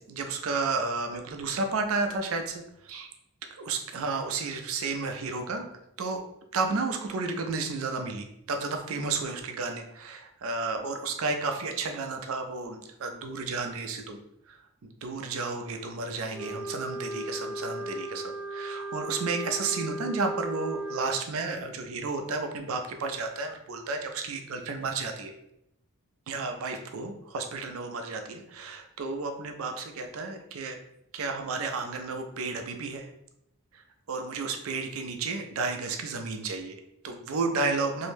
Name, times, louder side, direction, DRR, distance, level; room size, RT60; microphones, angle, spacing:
voice 1, 0.1-3.1 3.6-5.7 6.0-6.2 6.5-14.2 14.5-25.3 26.3-30.8 31.1-33.1 33.7-33.8 34.1-38.1, right 4 dB, 70° right, 5 dB, 0.4 m, -32 dB
Wind instrument woodwind instrument, 16.3-21.2, right 1 dB, 5° right, 0.7 m, -36 dB
2.6 x 2.1 x 3.1 m, 0.79 s
head